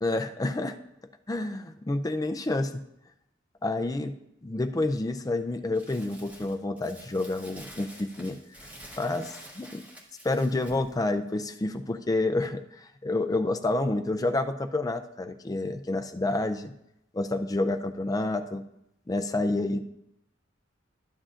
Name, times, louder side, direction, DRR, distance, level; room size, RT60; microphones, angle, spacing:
voice 1, 0.0-0.8 1.3-2.7 3.6-4.1 4.4-8.4 9.0-9.8 10.2-16.7 17.1-18.6 19.1-19.8, left 2 dB, 20° left, 8 dB, 0.4 m, -29 dB
Crumpling crinkling, 5.7-10.9, equal, 10° right, 1.3 m, -48 dB
12.5 x 9.9 x 2.5 m, 0.81 s
head